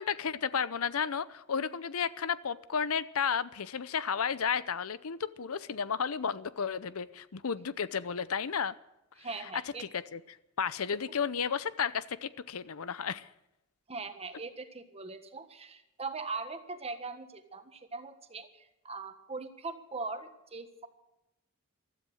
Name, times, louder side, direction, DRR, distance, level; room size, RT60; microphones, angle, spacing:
voice 1, 0.0-8.8 9.4-9.5 9.8-13.3, left 6 dB, 75° left, 16 dB, 0.7 m, -33 dB
voice 2, 9.2-9.8 13.9-20.9, right 3 dB, 30° right, 8 dB, 1.5 m, -41 dB
15.5 x 13.0 x 6.4 m, 0.91 s
head